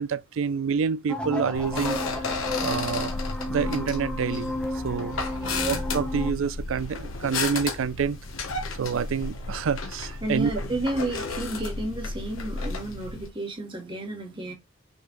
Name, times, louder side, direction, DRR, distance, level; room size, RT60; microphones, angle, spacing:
voice 1, 0.0-2.3 2.6-3.1 3.5-4.5 4.8-5.2 5.7-8.2 8.8-10.5, right 6 dB, 75° right, 0.4 m, -27 dB
sound 1, 1.1-6.3, left 1 dB, 5° left, 1.1 m, -32 dB
sound 2, 1.5-13.3, left 3 dB, 80° left, 1.3 m, -33 dB
voice 2, 5.3-5.9 8.7-8.8 10.2-14.5, right 1 dB, 25° right, 1.4 m, -32 dB
6.4 x 3.3 x 2.5 m
head